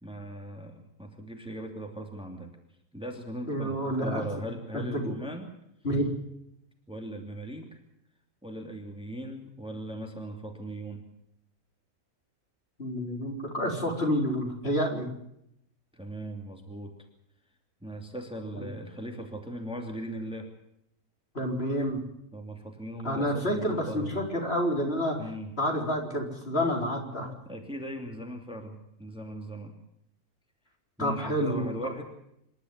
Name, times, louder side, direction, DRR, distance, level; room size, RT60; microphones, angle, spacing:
voice 1, 0.0-2.5 2.9-5.5 6.9-7.8 8.4-11.0 15.9-16.9 17.8-20.5 22.3-24.2 25.2-25.5 27.4-29.7 31.0-32.0, right 1 dB, 5° right, 3 dB, 2.7 m, -39 dB
voice 2, 3.5-4.2 4.7-5.1 5.8-6.1 12.8-15.1 21.3-22.0 23.0-25.2 25.6-27.3 31.0-31.9, equal, 45° left, 1 dB, 4.6 m, -29 dB
27.0 x 12.0 x 9.5 m, 0.78 s
omnidirectional pair, 1.5 m